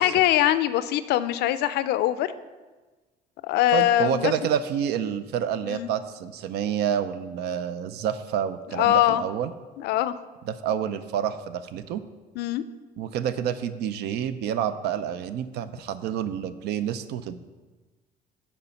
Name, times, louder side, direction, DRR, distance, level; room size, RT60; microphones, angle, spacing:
voice 1, 0.0-2.3 3.4-4.3 5.6-5.9 8.7-9.2 9.8-10.1 12.4-12.6, left 13 dB, 75° left, 14 dB, 0.4 m, -22 dB
voice 2, 3.7-9.5 10.5-12.0 13.0-17.4, right 9 dB, 75° right, 12 dB, 0.5 m, -28 dB
6.9 x 4.3 x 5.6 m, 1.3 s
cardioid pair, 110°, 17 cm